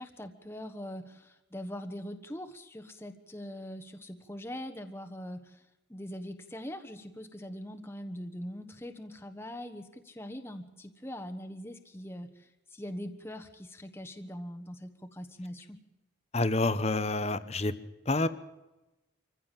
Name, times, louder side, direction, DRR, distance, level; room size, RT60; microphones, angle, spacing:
voice 1, 0.0-5.6 5.9-15.8, equal, 10° left, 6 dB, 1.3 m, -42 dB
voice 2, 16.3-17.7 18.1-18.3, left 2 dB, 35° left, 14 dB, 1.0 m, -28 dB
26.0 x 15.0 x 7.4 m, 1.0 s
head